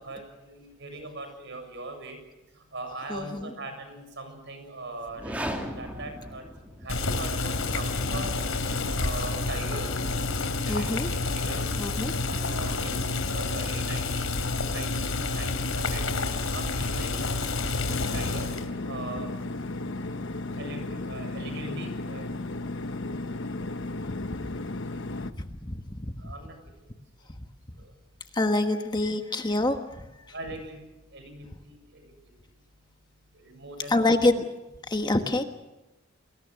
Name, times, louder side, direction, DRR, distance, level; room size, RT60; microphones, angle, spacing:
voice 1, 0.0-2.2 2.7-5.5 5.7-6.4 6.8-8.3 8.9-10.0 10.7-10.9 11.3-11.7 12.4-14.3 14.7-16.1 16.5-17.2 17.6-18.5 18.8-19.3 20.6-22.3 26.2-26.9 30.3-32.1 33.3-33.9, right 2 dB, 60° right, 6 dB, 7.4 m, -40 dB
voice 2, 3.1-3.5 10.7-11.1 11.8-12.4 24.4-24.6 25.4-26.3 27.3-27.4 27.7-27.8 28.3-30.3 33.9-34.5 34.9-35.4, left 2 dB, 20° left, 6 dB, 1.3 m, -27 dB
sound 1, 5.0-7.2, equal, 5° right, 2.9 m, -36 dB
Boiling, 6.9-18.7, left 3 dB, 85° left, 3.4 m, -29 dB
sound 2, 17.9-25.3, left 2 dB, 60° left, 1.1 m, -34 dB
29.5 x 21.5 x 6.4 m, 1.0 s
head